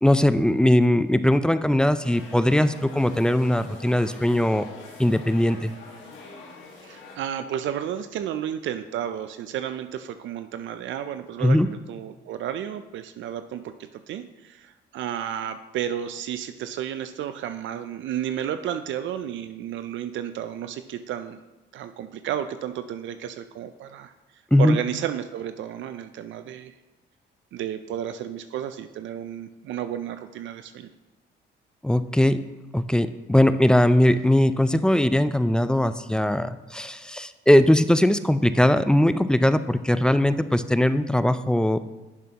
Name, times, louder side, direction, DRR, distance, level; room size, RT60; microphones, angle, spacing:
voice 1, 0.0-4.7 5.0-5.7 11.4-11.7 24.5-24.8 31.8-32.4 32.7-41.8, left 1 dB, 5° left, 12 dB, 0.3 m, -20 dB
sound 1, 2.0-7.2, left 3 dB, 80° left, 1.7 m, -44 dB
voice 2, 6.8-21.4 21.7-24.1 24.6-26.8 27.5-30.9, right 10 dB, 75° right, 10 dB, 0.4 m, -32 dB
10.5 x 6.8 x 2.9 m, 1.2 s
cardioid pair, 90°, 20 cm